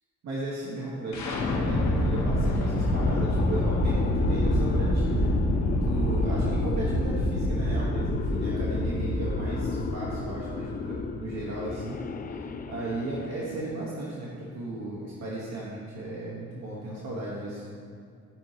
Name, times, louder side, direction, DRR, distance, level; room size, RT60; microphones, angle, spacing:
voice 1, 0.2-5.5 5.8-12.0 12.3-17.7, right 2 dB, 65° right, -6 dB, 1.5 m, -36 dB
sound 1, 1.1-13.0, left 1 dB, 60° left, 1.4 m, -27 dB
sound 2, 2.5-13.7, left 6 dB, 30° left, 0.4 m, -36 dB
13.5 x 4.6 x 3.0 m, 2.4 s
cardioid pair, 90°, 30 cm